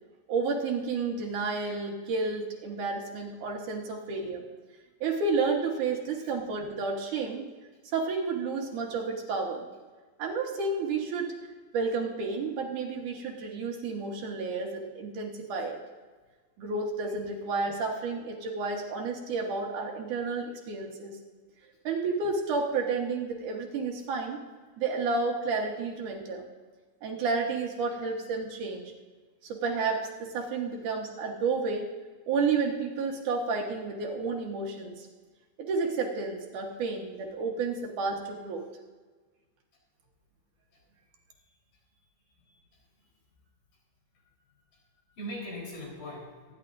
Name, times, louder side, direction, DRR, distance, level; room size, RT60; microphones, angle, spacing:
voice 1, 0.3-4.4 5.0-7.5 7.9-9.7 10.2-11.3 11.7-15.8 16.6-21.2 21.8-24.4 24.8-26.4 27.0-28.9 29.4-31.9 32.3-35.1 35.6-38.6, right 4 dB, 70° right, 1 dB, 2.8 m, -31 dB
voice 2, 42.3-42.8 44.2-44.3 45.1-46.5, equal, 85° left, -3 dB, 5.9 m, -42 dB
24.5 x 10.5 x 2.7 m, 1.4 s
omnidirectional pair, 3.9 m